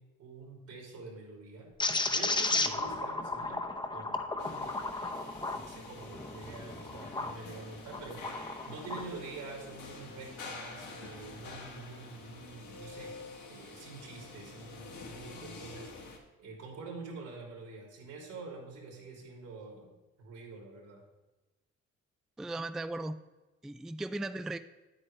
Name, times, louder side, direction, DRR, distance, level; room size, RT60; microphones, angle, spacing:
voice 1, 0.2-1.7 2.1-3.6 3.9-4.2 4.4-5.1 5.5-8.2 8.7-13.1 13.5-19.9 20.2-21.0, right 3 dB, 80° right, -1 dB, 3.4 m, -46 dB
sound 1, 1.8-7.4 7.9-9.1, left 3 dB, 15° left, 0.7 m, -34 dB
sound 2, 4.4-16.2, left 3 dB, 80° left, 2.0 m, -47 dB
voice 2, 22.4-23.2 23.6-24.6, right 2 dB, ahead, 11 dB, 0.3 m, -37 dB
9.7 x 8.7 x 3.3 m, 1.1 s
cardioid pair, 90°, 30 cm